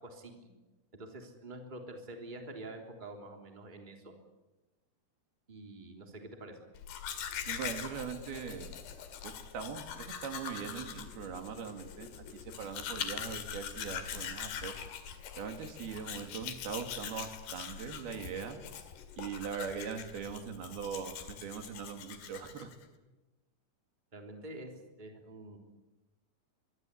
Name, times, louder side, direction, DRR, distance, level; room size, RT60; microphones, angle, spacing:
voice 1, 0.0-0.5 0.9-4.1 5.5-6.5 24.1-24.7 25.0-25.6, right 2 dB, 10° right, 3 dB, 3.1 m, -47 dB
Domestic sounds home sounds, 6.8-22.8, left 8 dB, 80° left, 4.2 m, -43 dB
voice 2, 7.5-8.7 9.2-12.1 12.6-14.7 15.3-18.6 19.2-22.7, right 7 dB, 70° right, 6 dB, 4.0 m, -41 dB
24.0 x 23.0 x 8.5 m, 1.1 s
omnidirectional pair, 4.7 m